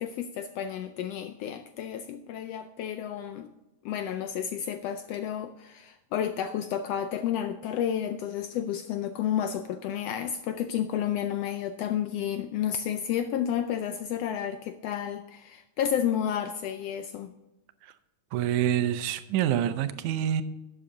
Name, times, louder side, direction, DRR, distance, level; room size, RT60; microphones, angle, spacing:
voice 1, 0.0-3.5 3.8-17.3, left 9 dB, 80° left, 9 dB, 1.4 m, -31 dB
voice 2, 18.3-20.4, right 10 dB, 85° right, 12 dB, 2.2 m, -27 dB
12.5 x 8.2 x 3.8 m, 1.0 s
omnidirectional pair, 3.4 m